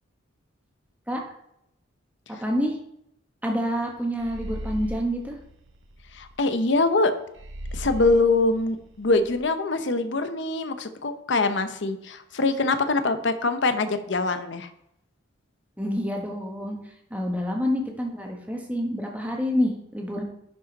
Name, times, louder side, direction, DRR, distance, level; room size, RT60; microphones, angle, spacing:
voice 1, 2.3-2.8 3.4-5.4 15.8-20.2, equal, 5° right, 0 dB, 1.3 m, -28 dB
sound 1, 4.2-6.4 7.4-9.4, equal, 65° right, 0.8 m, -38 dB
voice 2, 6.1-7.1 7.7-14.7, left 3 dB, 65° left, 9 dB, 0.8 m, -24 dB
11.0 x 5.3 x 4.1 m, 0.77 s
head